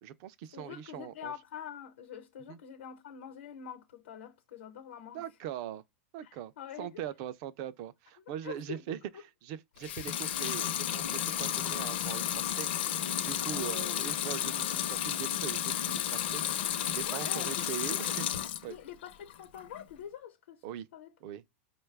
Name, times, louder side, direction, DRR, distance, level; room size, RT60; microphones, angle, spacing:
voice 1, 0.0-1.3 2.5-2.6 5.1-5.8 6.1-6.5 6.8-9.0 9.4-18.3 18.6-18.8 20.6-20.9 21.2-21.4, right 10 dB, 30° right, 0.3 m, -41 dB
voice 2, 0.5-5.2 6.2-7.0 8.4-8.8 13.5-14.0 14.4-14.6 17.0-17.6 18.0-18.2 18.7-20.6 20.9-21.1, left 9 dB, 85° left, 0.9 m, -45 dB
Water tap faucet / Sink (filling or washing) / Liquid, 9.8-18.7 19.1-19.8, left 10 dB, 55° left, 0.6 m, -32 dB
5.1 x 2.2 x 3.2 m
supercardioid pair, 175°, 7 cm